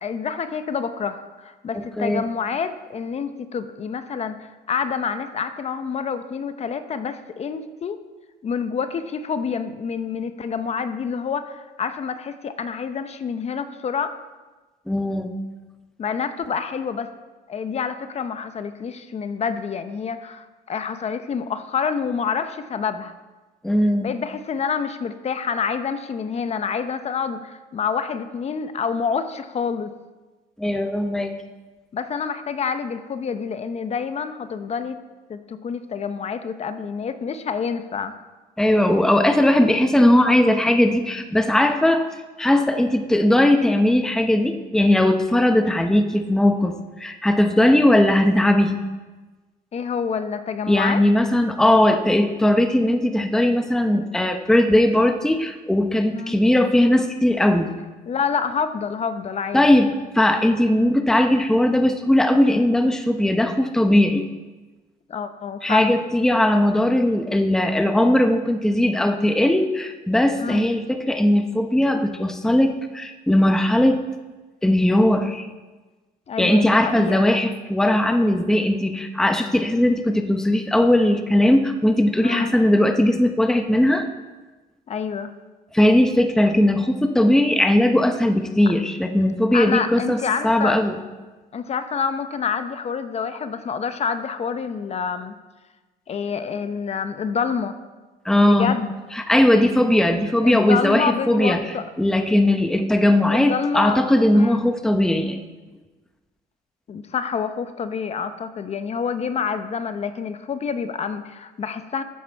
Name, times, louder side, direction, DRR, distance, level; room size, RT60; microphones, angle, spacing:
voice 1, 0.0-8.0 8.4-14.2 16.0-17.1 17.5-23.1 24.0-29.9 31.9-35.0 35.3-38.1 49.7-51.0 56.1-56.4 58.1-59.7 65.1-66.0 70.4-70.6 76.3-77.3 82.2-82.5 84.9-85.3 89.5-90.8 91.5-95.3 96.1-97.8 98.4-99.0 100.4-101.8 103.3-104.0 104.3-104.6 106.9-112.0, left 6 dB, 40° left, 10 dB, 0.8 m, -27 dB
voice 2, 14.9-15.3 23.6-24.1 30.6-31.3 38.6-42.1 42.4-48.8 50.7-57.7 59.5-59.9 60.1-64.2 65.6-74.0 74.6-75.5 76.4-84.1 85.7-91.0 98.2-98.8 99.1-101.6 102.0-105.4, left 1 dB, 5° left, 6 dB, 0.8 m, -19 dB
13.0 x 9.1 x 4.5 m, 1.2 s
cardioid pair, 110°, 17 cm